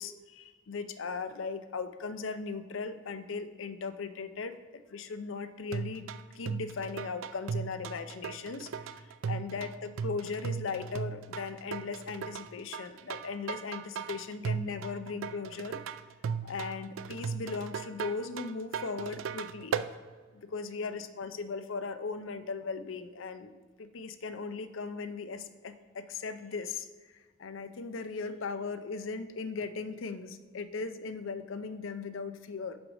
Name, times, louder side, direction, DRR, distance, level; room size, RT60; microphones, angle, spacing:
voice 1, 0.0-8.7 9.0-15.8 16.4-19.8 20.3-26.9 27.4-32.8, left 4 dB, 75° left, 11 dB, 0.5 m, -38 dB
sound 1, 5.7-19.9, right 6 dB, 75° right, 0.3 m, -37 dB
6.0 x 5.2 x 6.3 m, 1.4 s
head